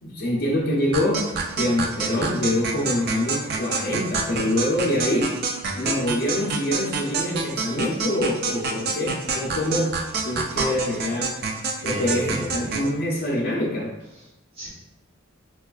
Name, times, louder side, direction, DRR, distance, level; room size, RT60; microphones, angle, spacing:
voice 1, 0.0-1.2 1.5-5.3 5.8-9.9 10.2-11.3 11.8-13.9, left 1 dB, 50° left, -6 dB, 0.5 m, -25 dB
sound 1, 0.9-12.9, right 4 dB, 50° right, 0.3 m, -28 dB
voice 2, 11.9-12.8 14.1-14.7, equal, 25° right, -9 dB, 0.9 m, -34 dB
4.3 x 2.3 x 2.3 m, 0.93 s
head